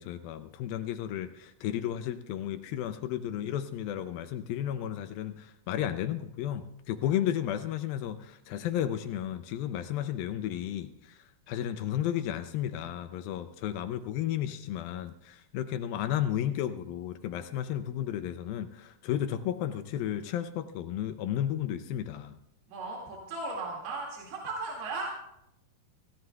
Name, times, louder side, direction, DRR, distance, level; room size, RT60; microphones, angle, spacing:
voice 1, 0.0-11.2 11.5-22.3, left 11 dB, 80° left, 9 dB, 2.2 m, -33 dB
voice 2, 22.7-25.1, right 3 dB, 85° right, -2 dB, 4.3 m, -36 dB
26.0 x 15.5 x 2.3 m, 0.81 s
omnidirectional pair, 4.6 m